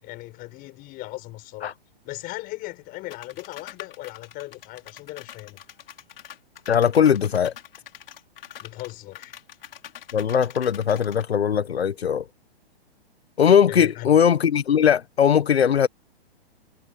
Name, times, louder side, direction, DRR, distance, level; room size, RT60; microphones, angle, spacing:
voice 1, 0.0-1.7 2.0-5.6 8.6-9.4 13.7-14.1, left 19 dB, 30° left, 6.0 m, -38 dB
sound 1, 3.1-11.2, left 10 dB, 65° left, 6.1 m, -44 dB
voice 2, 6.7-7.5 10.1-12.3 13.4-15.9, left 8 dB, 90° left, 1.3 m, -19 dB
hypercardioid pair, 140°, 30 cm